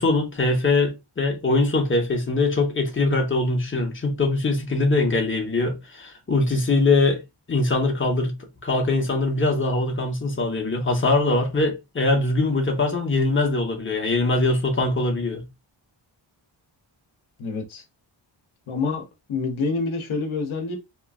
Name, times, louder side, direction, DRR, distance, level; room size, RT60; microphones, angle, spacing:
voice 1, 0.0-7.2 7.5-8.3 8.6-15.5, left 2 dB, 25° left, 0.9 m, -22 dB
voice 2, 17.4-17.8 18.7-19.0 19.3-20.8, left 4 dB, 85° left, 0.8 m, -27 dB
3.0 x 2.4 x 2.4 m
wide cardioid pair, 90°, 47 cm